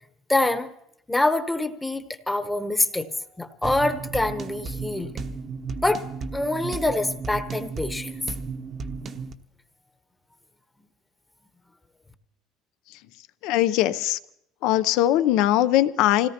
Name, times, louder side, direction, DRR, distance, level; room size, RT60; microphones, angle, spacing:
voice 1, 0.3-0.7 1.1-3.1 3.4-5.1 5.8-6.1 6.3-8.1, left 2 dB, 10° left, 8 dB, 1.0 m, -25 dB
sound 1, 3.6-9.3, right 4 dB, 35° right, 0.9 m, -34 dB
voice 2, 13.4-14.2 14.6-16.3, left 13 dB, 75° left, 13 dB, 0.6 m, -21 dB
27.0 x 17.5 x 2.9 m, 0.76 s
cardioid pair, 115°, 0 cm